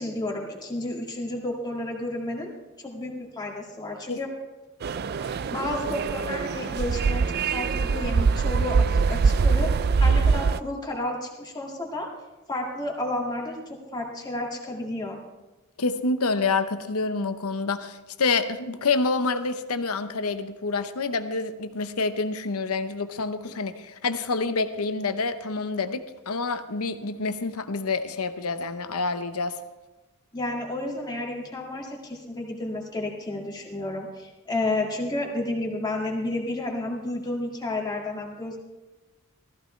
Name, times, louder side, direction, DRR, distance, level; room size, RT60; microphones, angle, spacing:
voice 1, 0.0-2.5 2.8-4.3 5.1-12.1 12.5-15.2 30.3-38.6, left 2 dB, 20° left, -1 dB, 2.0 m, -31 dB
sound 1, 4.8-10.6, right 5 dB, 45° right, 0.4 m, -23 dB
voice 2, 15.8-29.6, left 4 dB, 90° left, 9 dB, 0.9 m, -27 dB
15.5 x 14.5 x 3.3 m, 1.1 s
head